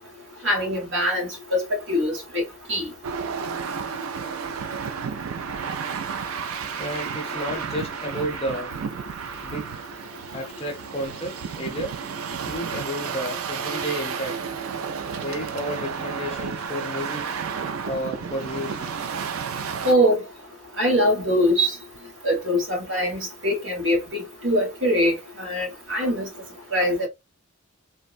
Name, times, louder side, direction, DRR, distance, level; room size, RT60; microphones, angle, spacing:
voice 1, 0.4-2.4 2.7-2.9 19.8-20.2 20.8-21.7 22.2-26.3 26.7-27.1, equal, 55° right, 1.3 m, -23 dB
sound 1, 3.0-19.9, right 6 dB, 70° right, 0.4 m, -32 dB
voice 2, 6.8-8.8 9.4-9.7 10.3-12.0 12.4-14.4 15.2-17.4 17.9-18.9, equal, 25° left, 0.6 m, -32 dB
3.4 x 2.0 x 2.4 m
head